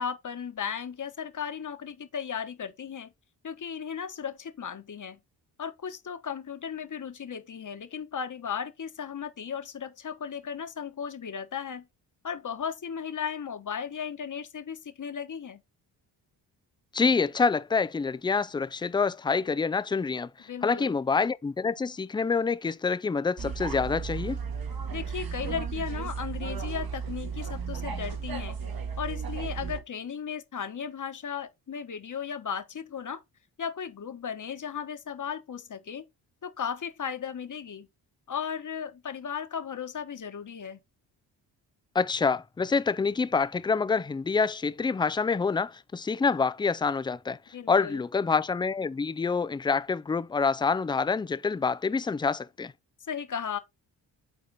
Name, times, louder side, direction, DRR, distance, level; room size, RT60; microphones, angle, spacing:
voice 1, 0.0-3.1 3.4-5.2 5.6-11.9 12.2-15.6 20.5-21.0 24.9-28.6 29.0-33.2 33.6-36.0 36.4-37.9 38.3-40.8 47.5-48.0 53.0-53.6, left 7 dB, 40° left, 1.2 m, -36 dB
voice 2, 16.9-24.4 41.9-47.4 47.7-52.7, left 5 dB, 10° left, 0.4 m, -27 dB
sound 1, 23.4-29.8, right 6 dB, 45° right, 1.5 m, -34 dB
7.5 x 4.2 x 4.0 m
supercardioid pair, 50°, 47 cm